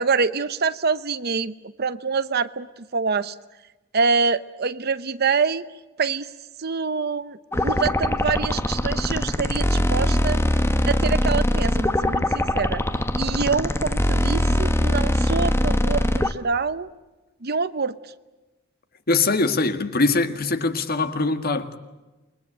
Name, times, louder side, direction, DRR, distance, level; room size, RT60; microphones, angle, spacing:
voice 1, 0.0-3.3 3.9-5.7 6.0-6.3 6.6-10.4 10.9-12.8 13.2-16.9 17.4-18.0, right 5 dB, 50° right, 0.9 m, -25 dB
sound 1, 7.5-16.3, left 1 dB, 15° left, 1.1 m, -22 dB
voice 2, 19.1-21.8, left 3 dB, 50° left, 1.9 m, -22 dB
28.5 x 22.0 x 8.8 m
head